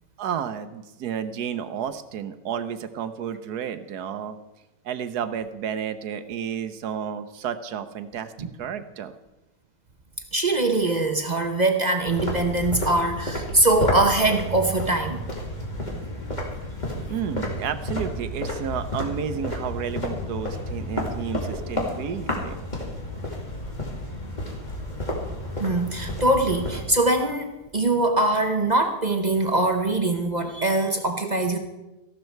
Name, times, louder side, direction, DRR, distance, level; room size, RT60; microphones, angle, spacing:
voice 1, 0.2-4.4 4.8-8.3 8.6-9.1 17.1-22.6, right 8 dB, 70° right, 11 dB, 1.3 m, -31 dB
voice 2, 10.3-15.2 25.6-31.6, right 2 dB, 35° right, 6 dB, 0.8 m, -22 dB
sound 1, 12.1-26.8, left 1 dB, 25° left, 2.5 m, -31 dB
14.5 x 12.0 x 4.6 m, 1.0 s
omnidirectional pair, 1.9 m